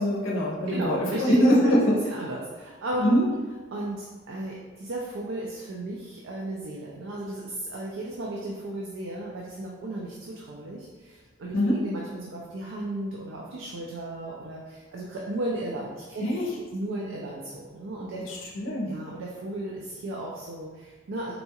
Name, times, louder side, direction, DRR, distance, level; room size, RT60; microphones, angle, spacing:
voice 1, 0.0-2.0 3.0-3.2 11.5-11.8 16.2-16.4 18.3-18.9, equal, 70° left, -4 dB, 0.6 m, -23 dB
voice 2, 0.7-3.3 3.7-16.3 16.7-18.5 18.8-21.3, right 1 dB, 65° right, -3 dB, 0.4 m, -35 dB
4.0 x 2.3 x 2.8 m, 1.3 s
head